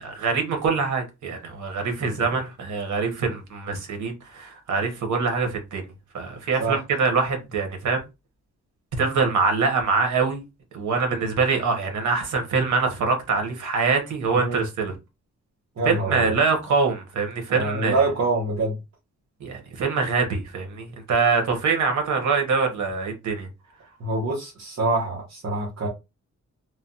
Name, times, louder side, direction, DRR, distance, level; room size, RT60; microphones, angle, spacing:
voice 1, 0.0-5.8 6.1-8.1 8.9-10.4 10.7-14.9 15.8-18.0 19.4-23.5, right 4 dB, 90° right, 1.0 m, -24 dB
voice 2, 15.8-16.3 17.5-18.8 24.0-25.9, right 2 dB, 60° right, 1.0 m, -25 dB
3.2 x 2.2 x 2.7 m
wide cardioid pair, 145°, 29 cm